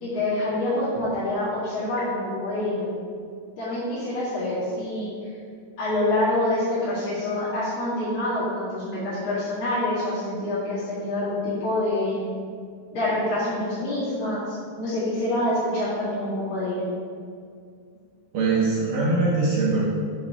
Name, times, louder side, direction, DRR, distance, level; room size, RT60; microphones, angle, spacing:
voice 1, 0.0-2.9 3.6-5.1 5.8-12.2 12.9-16.8, left 1 dB, 45° left, -13 dB, 2.6 m, -26 dB
voice 2, 18.3-19.8, right 3 dB, 70° right, -5 dB, 2.2 m, -22 dB
6.6 x 4.6 x 4.9 m, 2.2 s
omnidirectional pair, 4.8 m